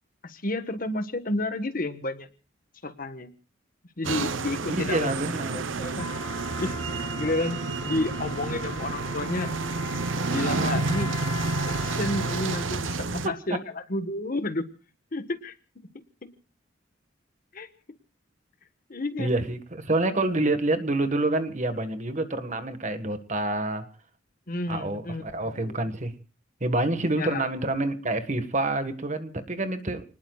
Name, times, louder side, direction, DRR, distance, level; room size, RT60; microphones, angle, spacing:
voice 1, 0.2-2.3 2.8-3.3 4.0-5.2 5.5-6.1 6.6-6.8 7.2-9.5 10.2-11.1 11.7-14.7 15.1-15.6 17.5-17.7 18.9-19.3 24.5-25.8 27.1-27.5, left 2 dB, 45° left, 10 dB, 1.4 m, -31 dB
sound 1, 4.0-13.3, right 3 dB, 80° right, 0.9 m, -30 dB
voice 2, 4.7-5.7 13.2-13.3 19.2-23.9 24.7-26.1 26.6-30.0, right 2 dB, 40° right, 9 dB, 1.6 m, -27 dB
Trumpet, 6.0-12.9, left 2 dB, 20° left, 2.3 m, -39 dB
30.0 x 20.0 x 2.4 m, 0.35 s
head